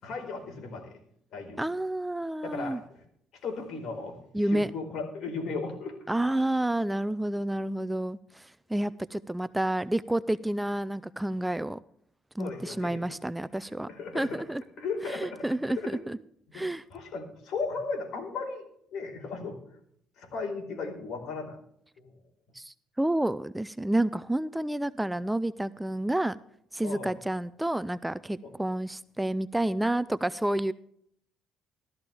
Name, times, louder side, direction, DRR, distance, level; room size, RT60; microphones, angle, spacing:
voice 1, 0.0-0.9 1.3-1.6 2.4-2.8 3.4-4.2 4.4-6.0 12.4-13.0 13.9-14.4 14.8-16.0 16.5-16.6 16.9-18.6 18.9-19.6 20.2-21.6 22.0-22.1 26.8-27.2 28.4-28.5, left 4 dB, 65° left, 2 dB, 4.5 m, -36 dB
voice 2, 1.6-2.8 4.3-4.7 6.1-11.8 12.4-13.9 14.1-14.6 15.1-16.2 16.5-16.8 22.5-26.4 26.7-30.7, right 1 dB, 5° right, 16 dB, 0.4 m, -29 dB
15.0 x 13.0 x 3.5 m, 0.68 s
cardioid pair, 110°, 0 cm